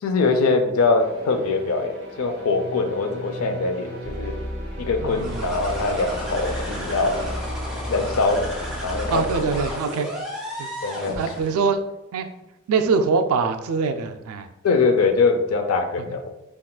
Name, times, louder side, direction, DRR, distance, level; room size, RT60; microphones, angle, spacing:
voice 1, 0.0-4.4 4.8-7.2 7.9-8.5 8.8-9.2 10.8-11.2 14.6-16.3, left 3 dB, 85° left, 6 dB, 0.4 m, -22 dB
sound 1, 1.0-7.4, right 1 dB, 70° right, 1.2 m, -39 dB
sound 2, 4.0-9.7, equal, 45° right, 0.7 m, -34 dB
voice 2, 5.0-5.5 9.1-10.1 10.6-10.7 11.0-11.8 12.1-12.3 12.7-14.5, right 5 dB, 90° right, 7 dB, 0.3 m, -23 dB
sound 3, 5.1-11.6, left 1 dB, 5° right, 0.9 m, -33 dB
3.6 x 2.4 x 2.3 m, 0.91 s
head